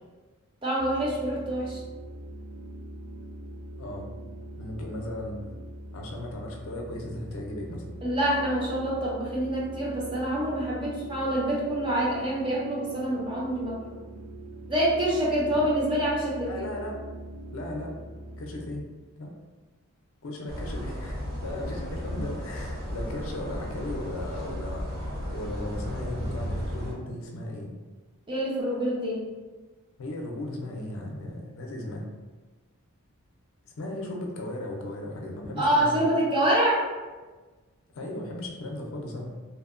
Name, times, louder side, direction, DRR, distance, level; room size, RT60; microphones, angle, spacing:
voice 1, 0.6-1.8 8.0-13.8 14.7-16.5 28.3-29.2 35.6-36.8, right 1 dB, 20° right, -5 dB, 0.5 m, -26 dB
sound 1, 0.8-18.8, right 1 dB, 75° right, 0.6 m, -42 dB
voice 2, 4.6-5.5 5.9-7.8 15.5-15.6 16.5-17.0 17.5-17.9 18.4-18.9 19.2-19.3 20.2-27.8 30.0-32.0 33.8-36.1 37.9-39.4, left 1 dB, 60° left, 0 dB, 0.4 m, -36 dB
sound 2, 20.5-26.9, equal, 55° right, 1.2 m, -34 dB
2.8 x 2.1 x 2.4 m, 1.3 s
head